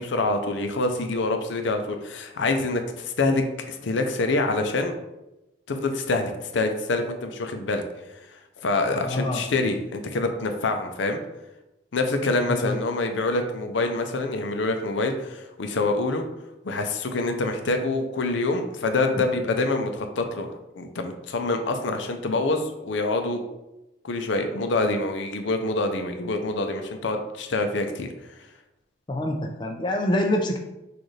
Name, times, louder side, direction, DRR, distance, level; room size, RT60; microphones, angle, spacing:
voice 1, 0.0-4.9 5.7-7.8 8.6-11.2 11.9-16.2 16.6-23.4 24.0-28.3, left 2 dB, 80° left, 5 dB, 0.5 m, -26 dB
voice 2, 8.9-9.4 12.4-12.8 29.1-30.6, left 1 dB, 25° left, 2 dB, 0.4 m, -26 dB
6.3 x 2.5 x 3.2 m, 0.94 s
head